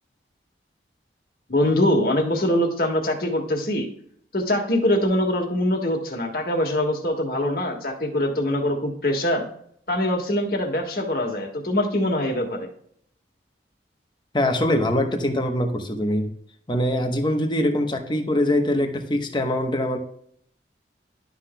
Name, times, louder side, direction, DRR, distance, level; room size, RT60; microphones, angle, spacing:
voice 1, 1.5-3.9 4.3-9.4 9.9-12.7, left 1 dB, 55° left, 2 dB, 1.6 m, -23 dB
voice 2, 14.3-16.3 16.7-20.0, left 1 dB, 25° left, 5 dB, 0.9 m, -23 dB
11.5 x 6.0 x 2.2 m, 0.66 s
head